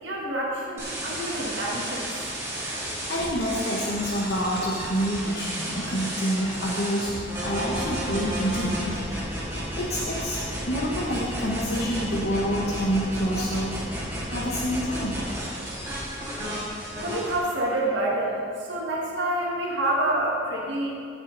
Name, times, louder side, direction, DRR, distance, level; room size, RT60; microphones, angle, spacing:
voice 1, 0.0-2.1 17.0-20.9, right 1 dB, 70° right, -3 dB, 1.6 m, -27 dB
sound 1, 0.8-17.4, right 1 dB, 15° right, 2.5 m, -32 dB
voice 2, 3.1-9.0 9.8-10.4 10.7-13.8 14.3-15.2, equal, 55° left, -4 dB, 1.0 m, -27 dB
16.5 x 6.5 x 3.9 m, 2.4 s
head